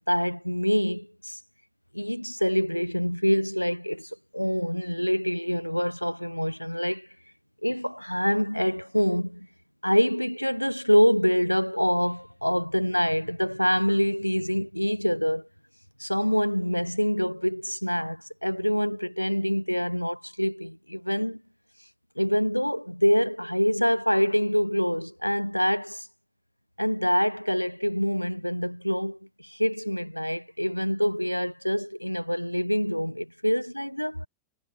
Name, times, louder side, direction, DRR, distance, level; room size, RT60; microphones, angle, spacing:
voice 1, 0.1-1.4 1.9-7.1 7.6-9.5 9.8-15.5 16.0-21.4 22.2-26.1 26.8-34.3, equal, 90° left, 1.0 m, -25 dB
figure-of-eight pair, 90°, 0 cm